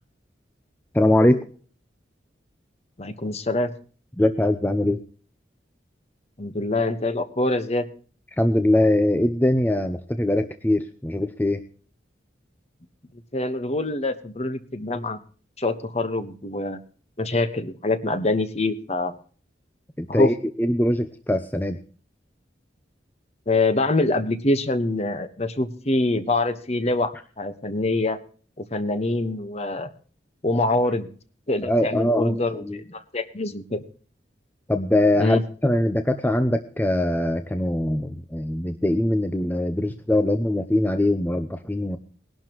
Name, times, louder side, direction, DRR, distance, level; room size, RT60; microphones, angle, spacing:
voice 1, 0.9-1.5 4.2-5.0 8.4-11.6 20.0-21.8 31.6-32.8 34.7-42.0, left 1 dB, 10° left, 8 dB, 0.6 m, -22 dB
voice 2, 3.0-3.7 6.4-7.9 13.3-15.2 15.6-16.8 17.2-19.1 20.1-20.3 23.5-28.2 28.7-29.9 30.4-31.1 31.5-33.8 35.2-35.4, left 2 dB, 35° left, 11 dB, 1.2 m, -25 dB
20.5 x 11.5 x 3.0 m, 0.41 s
head